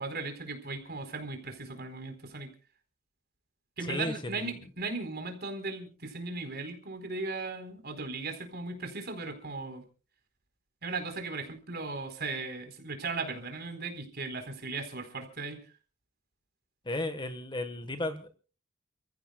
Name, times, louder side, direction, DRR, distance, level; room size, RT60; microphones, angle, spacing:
voice 1, 0.0-2.5 3.8-9.8 10.8-15.6, right 3 dB, 50° right, 6 dB, 4.2 m, -37 dB
voice 2, 3.8-4.5 16.8-18.3, left 2 dB, 25° left, 9 dB, 1.3 m, -34 dB
29.5 x 16.0 x 2.3 m, 0.37 s
head